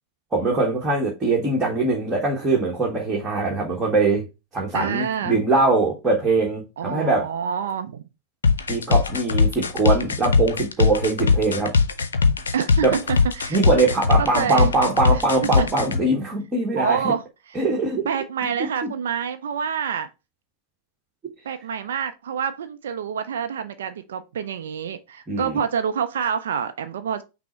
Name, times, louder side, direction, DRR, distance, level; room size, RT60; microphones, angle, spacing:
voice 1, 0.3-4.3 4.5-7.3 8.7-11.7 12.8-12.9 13.5-17.0 17.5-18.1 18.8-18.9 25.3-25.5, right 3 dB, 15° right, 1.2 m, -22 dB
voice 2, 4.7-5.4 6.8-8.0 12.5-13.0 13.3-13.6 14.2-14.7 15.1-15.2 15.6-15.7 16.8-17.6 18.1-20.1 21.4-27.2, right 7 dB, 60° right, 0.4 m, -27 dB
sound 1, 8.4-16.0, left 4 dB, 70° left, 0.6 m, -20 dB
5.8 x 2.0 x 4.4 m
figure-of-eight pair, 90°, 0 cm